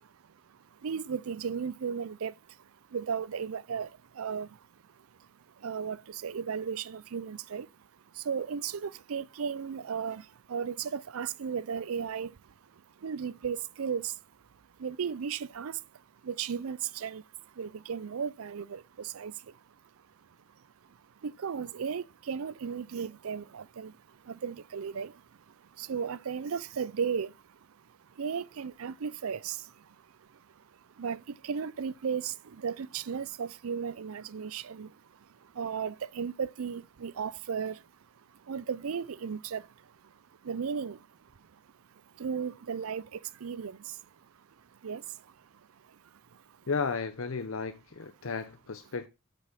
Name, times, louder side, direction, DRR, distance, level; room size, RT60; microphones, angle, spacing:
voice 1, 0.0-14.2 14.8-19.6 20.5-41.6 41.9-46.6, right 6 dB, 85° right, 0.5 m, -36 dB
voice 2, 46.7-49.1, left 4 dB, 70° left, 0.7 m, -34 dB
8.2 x 5.3 x 5.9 m
head